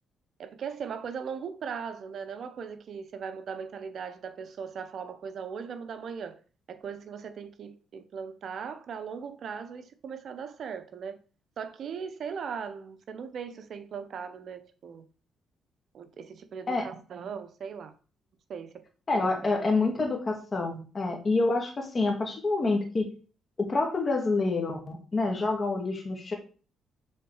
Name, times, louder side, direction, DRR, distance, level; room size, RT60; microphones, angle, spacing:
voice 1, 0.4-6.4 6.7-11.2 11.6-15.1 15.9-17.9 18.5-18.7 19.1-19.7, right 6 dB, 60° right, 0.9 m, -39 dB
voice 2, 19.1-23.1 23.6-26.3, left 3 dB, 35° left, 2.0 m, -27 dB
6.7 x 3.9 x 4.8 m
cardioid pair, 90°, 0 cm